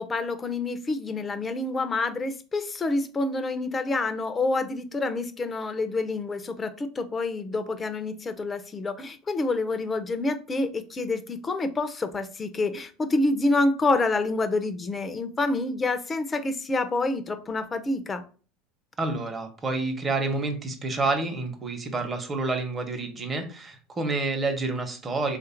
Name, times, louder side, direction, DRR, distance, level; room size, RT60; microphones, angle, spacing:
voice 1, 0.0-18.2, left 2 dB, 25° left, 9 dB, 0.7 m, -27 dB
voice 2, 19.0-25.4, right 3 dB, 25° right, 5 dB, 1.1 m, -28 dB
3.3 x 2.5 x 4.4 m, 0.37 s
hypercardioid pair, 95°, 0 cm